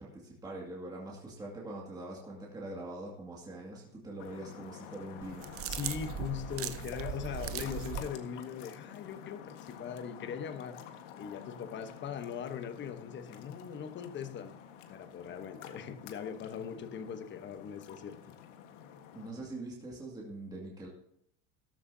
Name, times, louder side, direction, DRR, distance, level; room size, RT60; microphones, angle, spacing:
voice 1, 0.0-5.5 19.1-20.9, right 2 dB, 10° right, -3 dB, 2.2 m, -43 dB
sound 1, 4.2-19.3, left 8 dB, 75° left, 1.6 m, -49 dB
sound 2, 5.2-8.1, right 10 dB, 40° right, 0.8 m, -39 dB
voice 2, 5.6-14.5 14.9-18.3, left 8 dB, 30° left, 9 dB, 1.1 m, -40 dB
14.0 x 12.0 x 2.8 m, 0.70 s
supercardioid pair, 130°, 37 cm